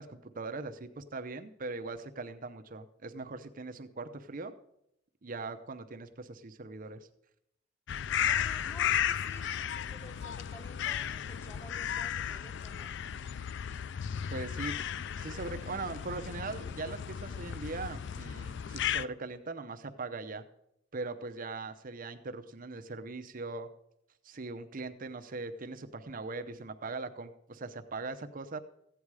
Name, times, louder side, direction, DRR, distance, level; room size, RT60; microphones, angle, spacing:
voice 1, 0.0-4.5 5.2-7.1 14.3-14.8 15.2-20.4 20.9-23.7 24.2-28.6, right 3 dB, 45° right, 8 dB, 0.7 m, -40 dB
sound 1, 7.9-19.1, left 9 dB, 65° left, 0.4 m, -34 dB
voice 2, 8.2-12.9 15.4-16.1, equal, 15° left, 7 dB, 1.0 m, -52 dB
15.5 x 8.9 x 4.8 m, 0.78 s
head